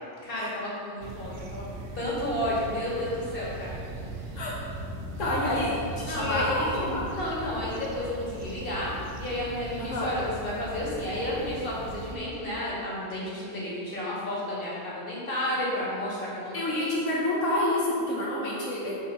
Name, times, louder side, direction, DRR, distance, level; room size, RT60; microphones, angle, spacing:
voice 1, 0.2-1.7 1.9-3.8 6.0-6.7 7.1-8.9 9.2-17.0, left 1 dB, 50° left, -7 dB, 2.2 m, -32 dB
sound 1, 1.0-12.2, right 2 dB, 80° right, 1.1 m, -39 dB
voice 2, 5.2-7.1 9.8-10.1 16.5-19.0, left 1 dB, 85° left, -5 dB, 1.5 m, -28 dB
7.8 x 4.6 x 5.6 m, 2.4 s
omnidirectional pair, 1.3 m